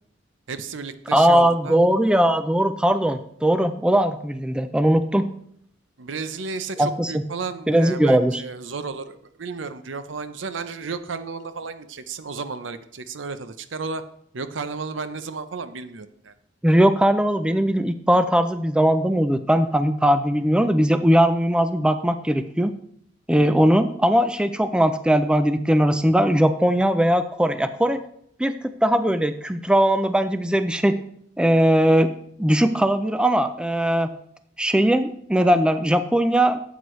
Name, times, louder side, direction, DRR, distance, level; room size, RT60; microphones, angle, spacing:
voice 1, 0.5-1.8 6.0-14.0 14.3-16.3, right 4 dB, 70° right, 11 dB, 0.6 m, -33 dB
voice 2, 1.1-5.3 6.8-7.2 7.7-8.4 16.6-22.7 23.3-28.0 28.4-31.0 31.4-32.1 32.4-34.1 34.6-36.6, equal, 5° right, 10 dB, 0.4 m, -19 dB
12.5 x 8.1 x 3.1 m, 0.68 s
head